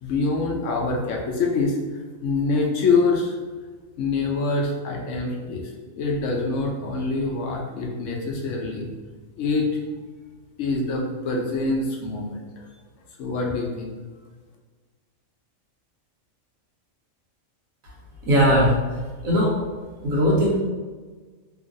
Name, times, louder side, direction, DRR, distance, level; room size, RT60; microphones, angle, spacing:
voice 1, 0.0-1.8 2.2-3.4 4.0-5.7 6.0-8.9 9.4-9.7 10.6-12.4 13.2-14.0, left 3 dB, 70° left, 0 dB, 0.9 m, -25 dB
voice 2, 18.2-18.8 19.2-19.5 20.0-20.6, equal, 80° right, -4 dB, 1.3 m, -19 dB
3.0 x 2.5 x 2.5 m, 1.4 s
omnidirectional pair, 1.4 m